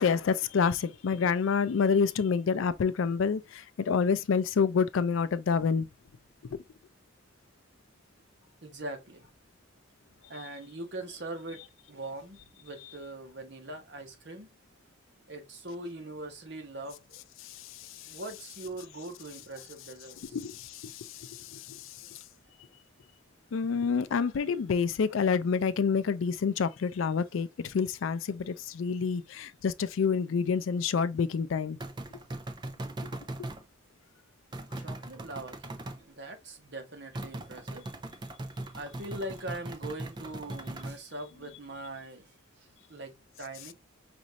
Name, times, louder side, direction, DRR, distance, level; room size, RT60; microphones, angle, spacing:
voice 1, 0.0-5.9 17.4-18.2 20.3-22.2 23.5-31.8 33.0-33.1 33.4-33.5, left 6 dB, 75° left, 0.4 m, -28 dB
voice 2, 8.6-9.3 10.3-14.5 15.3-17.2 18.1-20.4 34.8-37.9 38.7-43.7, right 2 dB, 55° right, 1.1 m, -42 dB
sound 1, 31.8-33.6 34.5-36.0 37.2-41.0, right 1 dB, 20° right, 0.4 m, -39 dB
5.1 x 2.6 x 2.8 m
head